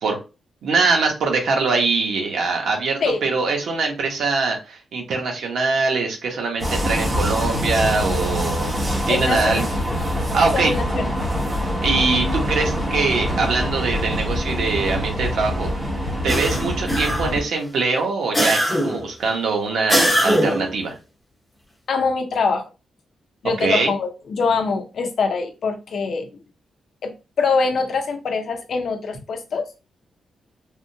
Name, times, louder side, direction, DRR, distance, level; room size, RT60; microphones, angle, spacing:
voice 1, 0.6-8.7 9.1-9.7 10.3-10.7 11.8-15.7 16.2-20.9 23.6-23.9, right 4 dB, 80° right, 1.0 m, -22 dB
sound 1, 6.6-17.4, equal, 25° right, 1.0 m, -24 dB
voice 2, 9.1-9.7 10.5-11.1 21.9-22.6 23.4-26.3 27.0-27.1 27.4-29.7, left 4 dB, 60° left, 0.6 m, -23 dB
sound 2, 16.3-17.5 18.3-19.1 19.9-20.7, equal, 10° left, 1.1 m, -21 dB
3.4 x 2.2 x 2.7 m
wide cardioid pair, 145°, 0 cm